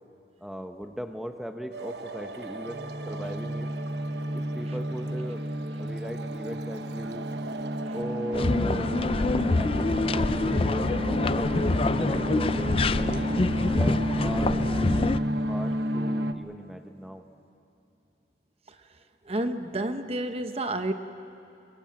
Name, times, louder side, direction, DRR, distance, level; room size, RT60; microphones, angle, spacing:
voice 1, 0.4-3.7 4.3-5.4 5.8-7.3 7.9-8.9 9.3-11.5 12.0-13.3 13.7-14.6 15.2-17.2, equal, ahead, 6 dB, 1.0 m, -38 dB
sound 1, 1.7-16.3, equal, 75° right, 1.0 m, -31 dB
sound 2, 8.3-15.2, left 3 dB, 30° left, 0.4 m, -26 dB
voice 2, 19.2-20.9, right 1 dB, 35° right, 8 dB, 1.0 m, -30 dB
25.0 x 23.0 x 7.6 m, 2.9 s
head